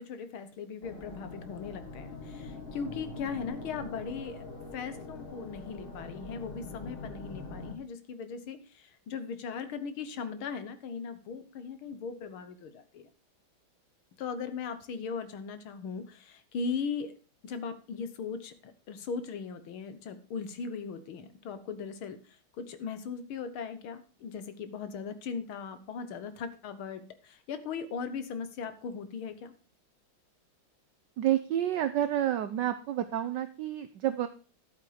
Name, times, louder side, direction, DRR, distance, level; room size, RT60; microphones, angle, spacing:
voice 1, 0.0-4.4 4.7-13.1 14.2-17.1 17.4-22.2 22.6-29.5, left 5 dB, 85° left, 11 dB, 2.0 m, -38 dB
sound 1, 0.8-7.7, left 3 dB, 30° left, 1.6 m, -43 dB
voice 2, 31.2-34.3, right 11 dB, 65° right, 10 dB, 1.2 m, -29 dB
11.0 x 8.6 x 5.0 m, 0.37 s
omnidirectional pair, 2.2 m